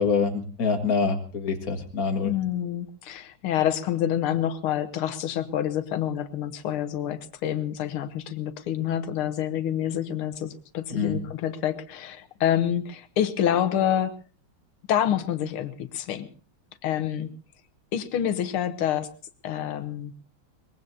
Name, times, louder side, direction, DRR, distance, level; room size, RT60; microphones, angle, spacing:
voice 1, 0.0-2.3 10.9-11.2, left 5 dB, 45° left, 4 dB, 2.2 m, -25 dB
voice 2, 2.2-14.1 14.9-16.3 16.8-17.3 17.9-19.1 19.4-20.1, left 10 dB, 90° left, 11 dB, 1.9 m, -27 dB
23.0 x 20.5 x 2.7 m, 0.38 s
omnidirectional pair, 2.3 m